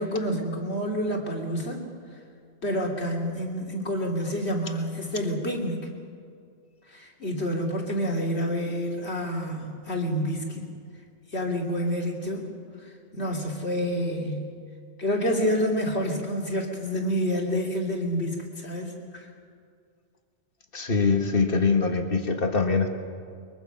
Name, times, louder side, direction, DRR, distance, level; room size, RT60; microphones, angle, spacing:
voice 1, 0.0-1.8 2.6-5.9 6.9-10.7 11.3-12.5 13.1-14.5 15.0-19.3, equal, 80° left, 0 dB, 3.1 m, -28 dB
voice 2, 20.7-22.9, left 4 dB, 60° left, 5 dB, 1.8 m, -23 dB
22.5 x 22.5 x 5.8 m, 2.3 s
omnidirectional pair, 1.1 m